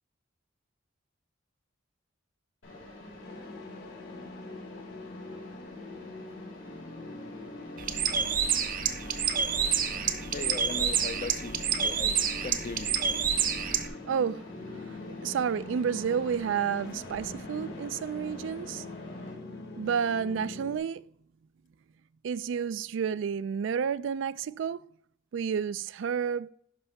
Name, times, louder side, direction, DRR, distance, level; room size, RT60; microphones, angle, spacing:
Mechanisms, 2.6-19.3, left 2 dB, 90° left, 3.8 m, -47 dB
sound 1, 3.2-20.8, left 2 dB, 55° left, 1.1 m, -44 dB
Bird, 7.8-13.9, right 7 dB, 45° right, 0.8 m, -28 dB
voice 1, 10.3-12.2 12.4-13.0, left 4 dB, 40° left, 0.4 m, -38 dB
voice 2, 14.0-14.4 15.2-18.8 19.8-21.0 22.2-24.8 25.3-26.5, right 7 dB, 70° right, 0.3 m, -30 dB
11.0 x 5.4 x 3.4 m
head